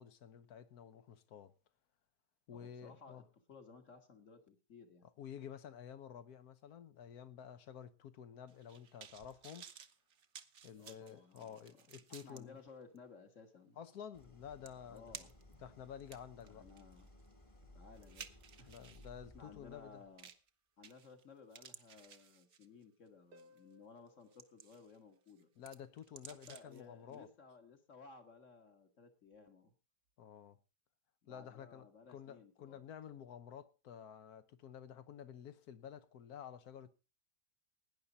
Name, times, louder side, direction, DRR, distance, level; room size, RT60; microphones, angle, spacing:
voice 1, 0.0-1.5 2.5-3.3 5.0-9.7 10.6-12.6 13.8-15.1 15.6-16.7 18.7-20.0 25.6-27.3 30.2-30.6 31.3-36.9, left 8 dB, 65° left, 1.4 m, -51 dB
voice 2, 2.5-5.1 10.8-13.8 14.9-15.7 16.5-17.1 17.7-18.7 19.3-20.3 20.8-25.5 26.5-29.7 31.2-32.8, left 4 dB, 50° left, 2.0 m, -58 dB
sound 1, 8.5-12.4 13.0-13.1 14.2-14.3 14.7-15.5 16.0-19.1 20.2-20.5 20.8-21.2 21.5-22.8 23.4-23.6 24.1-25.0 25.3-26.8 27.1-27.2, right 7 dB, 50° right, 1.0 m, -55 dB
Idling, 14.1-20.2, left 1 dB, 20° left, 1.3 m, -61 dB
Harp, 23.3-25.8 29.3-29.4, left 1 dB, 70° right, 1.4 m, -67 dB
17.0 x 10.0 x 4.0 m
omnidirectional pair, 1.8 m